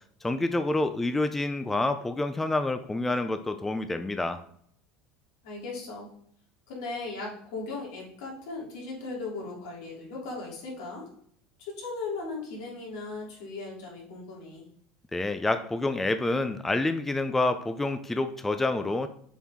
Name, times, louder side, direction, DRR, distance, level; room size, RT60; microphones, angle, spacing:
voice 1, 0.2-4.4 15.1-19.1, left 2 dB, 10° left, 9 dB, 0.4 m, -28 dB
voice 2, 5.4-6.1 6.7-11.1 11.6-14.6, left 3 dB, 85° left, -4 dB, 3.0 m, -37 dB
7.1 x 4.5 x 3.6 m, 0.64 s
supercardioid pair, 120°, 3 cm